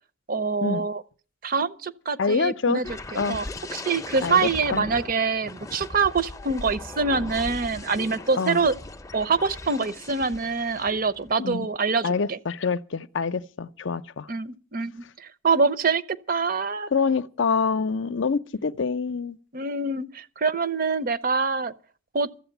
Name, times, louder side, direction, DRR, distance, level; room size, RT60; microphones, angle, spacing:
voice 1, 0.3-1.0 1.4-3.0 3.3-3.5 3.7-8.7 9.1-12.4 14.3-16.0 16.3-16.9 19.5-21.7 22.1-22.3, right 4 dB, 45° right, 0.7 m, -25 dB
voice 2, 2.2-2.8 3.1-3.4 4.2-4.8 8.4-8.6 11.4-11.7 12.0-14.3 16.9-19.4, left 5 dB, 60° left, 0.6 m, -26 dB
sound 1, 2.8-11.3 11.7-12.0, left 2 dB, 15° left, 0.6 m, -39 dB
13.5 x 8.0 x 9.0 m
head